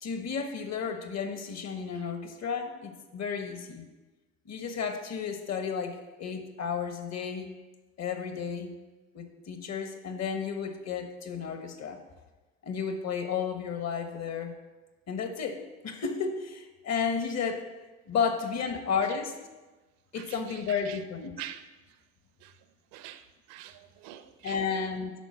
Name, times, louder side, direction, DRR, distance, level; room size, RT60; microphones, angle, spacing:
voice 1, 0.0-3.9 4.4-7.5 8.0-8.8 9.1-12.0 12.6-14.5 15.1-17.7 18.1-19.4 20.1-21.3 24.4-25.1, left 6 dB, 45° left, 1.4 m, -32 dB
voice 2, 20.1-21.0 21.4-21.7 22.4-22.6 22.9-24.8, right 12 dB, 70° right, 0.8 m, -45 dB
11.0 x 4.1 x 6.5 m
hypercardioid pair, 75°, 36 cm